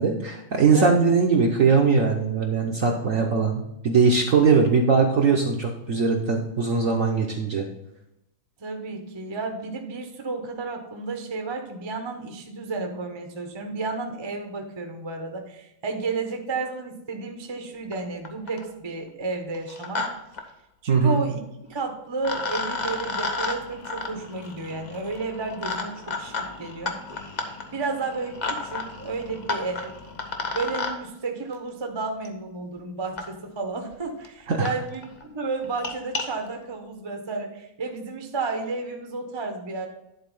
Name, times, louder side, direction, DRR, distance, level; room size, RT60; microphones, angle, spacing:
voice 1, 0.0-7.6 20.9-21.2 34.5-34.7, right 5 dB, 55° right, 2 dB, 0.9 m, -21 dB
voice 2, 8.6-20.1 20.8-27.0 27.7-30.0 30.5-39.9, right 3 dB, 25° right, 4 dB, 0.5 m, -32 dB
sound 1, 17.9-18.0 18.2-18.7 19.5-20.1 20.3-20.4 21.7-21.8 22.2-30.9 32.2-32.3 33.2-33.3 33.9-34.0 34.2-34.3 34.6-34.7 35.0-35.2 35.6-36.2, left 3 dB, 60° left, 0.4 m, -32 dB
10.5 x 4.1 x 5.4 m, 0.87 s
omnidirectional pair, 2.2 m